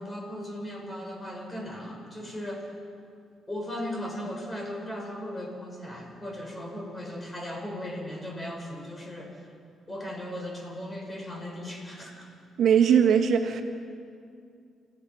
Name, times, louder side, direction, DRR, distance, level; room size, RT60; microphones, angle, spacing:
voice 1, 0.0-2.7 3.5-9.5 9.9-12.3, left 1 dB, 20° left, 0 dB, 5.9 m, -37 dB
voice 2, 12.6-13.6, right 8 dB, 65° right, 5 dB, 1.5 m, -20 dB
30.0 x 15.0 x 5.9 m, 2.4 s
cardioid pair, 90°, 0 cm